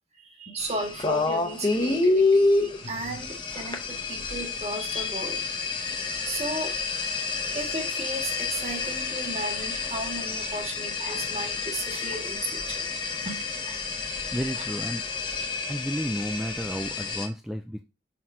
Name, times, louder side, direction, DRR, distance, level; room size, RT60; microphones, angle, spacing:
voice 1, 0.1-5.4 6.2-6.8 7.5-12.9 13.2-13.8, right 1 dB, 35° right, 1.7 m, -35 dB
sound 1, 0.6-17.3, left 3 dB, 25° left, 0.8 m, -29 dB
voice 2, 14.3-15.0 15.7-17.8, equal, ahead, 0.3 m, -32 dB
6.0 x 3.9 x 4.3 m
head